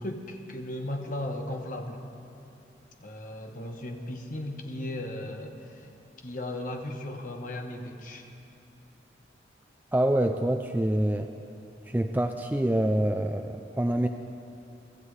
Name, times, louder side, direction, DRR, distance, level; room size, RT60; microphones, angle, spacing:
voice 1, 0.0-2.0 3.0-5.9 6.2-8.3, left 1 dB, 45° left, 3 dB, 1.2 m, -36 dB
voice 2, 9.9-11.3 11.9-14.1, right 1 dB, 10° right, 5 dB, 0.3 m, -26 dB
23.5 x 14.0 x 3.3 m, 2.8 s
head